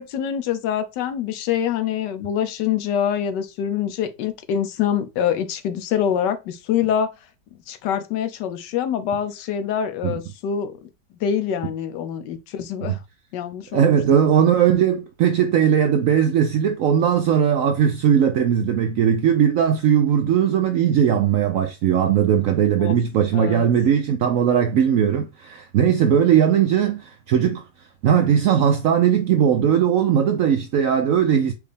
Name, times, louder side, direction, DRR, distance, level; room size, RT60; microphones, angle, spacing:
voice 1, 0.0-7.1 7.7-10.8 11.2-13.0 13.3-14.3 22.8-23.0 23.3-23.7, left 9 dB, 80° left, 1.3 m, -25 dB
voice 2, 13.7-27.6 28.0-31.5, right 8 dB, 75° right, 0.7 m, -19 dB
4.7 x 2.5 x 3.2 m
omnidirectional pair, 1.9 m